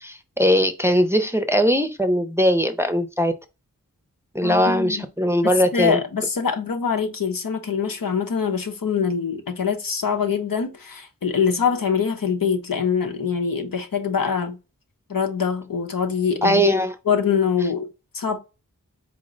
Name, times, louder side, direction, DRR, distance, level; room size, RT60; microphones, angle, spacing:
voice 1, 0.0-3.3 4.3-6.0 16.4-16.9, equal, 10° right, 0.5 m, -20 dB
voice 2, 4.4-5.1 5.4-14.6 15.1-16.6 17.1-18.4, left 6 dB, 80° left, 0.8 m, -24 dB
4.2 x 2.1 x 3.8 m
wide cardioid pair, 55°, 34 cm